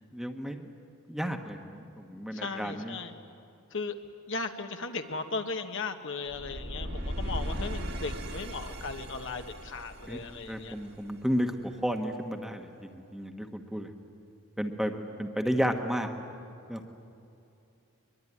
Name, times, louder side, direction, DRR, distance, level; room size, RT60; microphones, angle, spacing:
voice 1, 0.1-0.7 1.1-3.0 10.0-10.2 10.5-13.9 14.6-16.1 16.7-16.8, equal, ahead, 4 dB, 1.2 m, -32 dB
voice 2, 2.3-3.1 3.7-3.9 4.3-10.7, left 4 dB, 60° left, 6 dB, 1.4 m, -37 dB
sound 1, 6.3-11.3, equal, 45° right, 1.8 m, -37 dB
23.0 x 22.5 x 9.9 m, 2.6 s
head